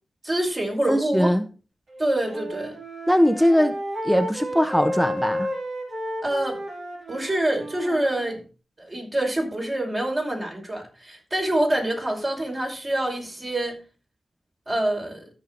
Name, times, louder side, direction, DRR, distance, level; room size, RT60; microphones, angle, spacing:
voice 1, 0.2-1.3 2.0-2.7 6.2-6.6 7.1-8.4 8.8-13.8 14.7-15.3, right 1 dB, 35° right, 5.2 m, -26 dB
voice 2, 0.9-1.4 3.1-3.7 4.0-5.5, equal, ahead, 0.9 m, -20 dB
Wind instrument woodwind instrument, 1.9-8.4, equal, 70° right, 4.0 m, -32 dB
13.5 x 6.2 x 4.0 m
cardioid pair, 60°, 0 cm